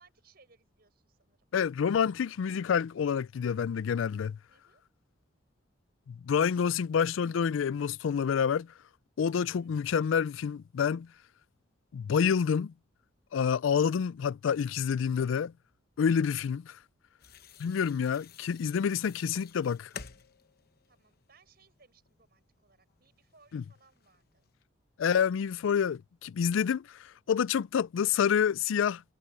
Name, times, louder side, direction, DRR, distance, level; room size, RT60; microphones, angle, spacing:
voice 1, 0.0-1.5 4.5-4.8 9.6-9.9 16.3-16.5 20.9-24.5, right 4 dB, 50° right, 7.0 m, -65 dB
voice 2, 1.5-4.4 6.1-8.7 9.2-11.1 11.9-12.7 13.3-15.5 16.0-16.8 17.6-19.9 23.5-23.6 25.0-29.0, left 7 dB, 80° left, 0.4 m, -28 dB
sound 1, 17.2-24.6, left 7 dB, 50° left, 1.0 m, -52 dB
head